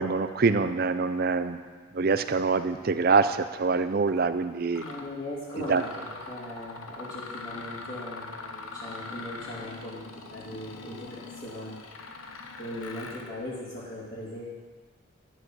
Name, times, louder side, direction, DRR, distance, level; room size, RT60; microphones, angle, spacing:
voice 1, 0.0-1.6 1.9-4.8 5.7-5.8, right 4 dB, 45° right, 10 dB, 0.5 m, -25 dB
Mechanisms, 4.1-4.2 4.7-5.1 5.5-13.3, left 3 dB, 90° left, 1.0 m, -42 dB
voice 2, 4.8-12.1 12.6-14.5, left 1 dB, 40° left, -9 dB, 2.8 m, -39 dB
12.0 x 7.9 x 6.2 m, 1.5 s
head